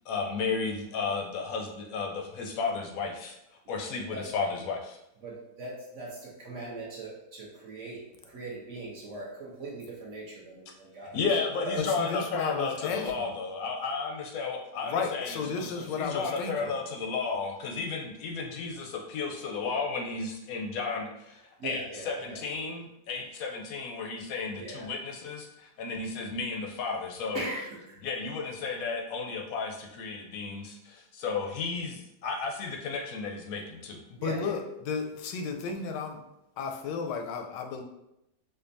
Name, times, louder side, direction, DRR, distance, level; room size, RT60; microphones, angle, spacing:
voice 1, 0.1-3.4 3.7-5.0 11.1-27.5 28.0-34.0, left 4 dB, 70° left, 1 dB, 0.9 m, -33 dB
voice 2, 5.2-11.2 11.6-11.8 21.6-22.4 24.6-24.9 27.3-28.0 34.2-34.5, right 2 dB, 55° right, -4 dB, 1.0 m, -40 dB
voice 3, 11.8-13.3 14.8-16.8 34.1-36.2 36.6-37.8, left 5 dB, 90° left, 4 dB, 1.2 m, -33 dB
5.1 x 2.1 x 2.6 m, 0.85 s
omnidirectional pair, 1.8 m